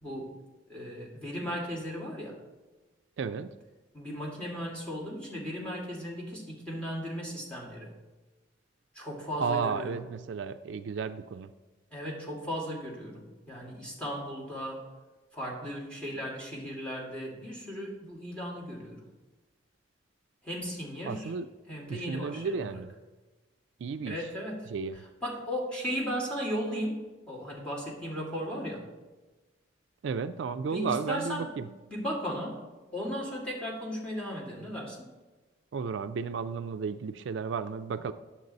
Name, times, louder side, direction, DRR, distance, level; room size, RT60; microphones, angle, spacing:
voice 1, 0.0-0.3 0.7-2.4 3.9-7.9 8.9-10.0 11.9-14.9 15.3-19.0 20.4-21.3 21.7-22.7 24.1-24.6 25.2-27.0 27.3-28.9 30.7-32.6 32.9-35.1, equal, 5° left, -3 dB, 2.0 m, -36 dB
voice 2, 3.2-3.6 9.4-11.5 21.0-21.5 21.9-22.9 23.8-24.3 24.7-25.0 30.0-31.7 35.7-38.1, right 5 dB, 70° right, 11 dB, 0.3 m, -33 dB
9.6 x 7.2 x 4.0 m, 1.2 s
head